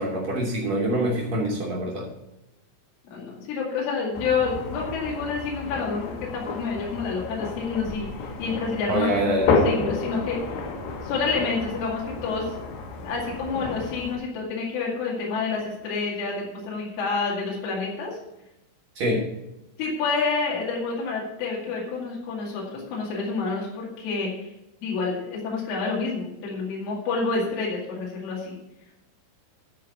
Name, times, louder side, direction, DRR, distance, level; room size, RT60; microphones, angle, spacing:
voice 1, 0.0-2.1 8.9-9.5 18.9-19.3, right 1 dB, 80° right, -3 dB, 1.6 m, -25 dB
voice 2, 3.1-10.6 11.0-12.7 13.0-18.2 19.8-24.5 24.8-28.6, left 4 dB, 90° left, -4 dB, 4.7 m, -28 dB
sound 1, 4.1-14.2, left 4 dB, 75° left, 3.6 m, -31 dB
13.0 x 4.7 x 6.8 m, 0.90 s
omnidirectional pair, 5.5 m